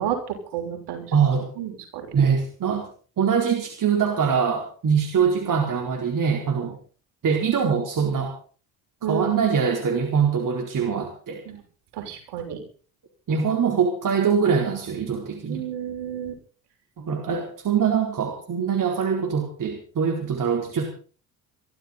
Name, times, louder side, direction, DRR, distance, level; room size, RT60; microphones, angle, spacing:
voice 1, 0.0-1.1 1.6-2.1 9.0-9.5 11.5-11.6 11.9-12.6 15.5-16.3, right 9 dB, 60° right, 5 dB, 6.1 m, -30 dB
voice 2, 1.1-1.5 2.1-2.8 3.2-6.8 7.2-8.3 9.0-11.4 13.3-15.6 17.0-20.8, right 6 dB, 45° right, 2 dB, 4.4 m, -23 dB
23.0 x 14.0 x 4.0 m, 0.39 s
hypercardioid pair, 60°, 45 cm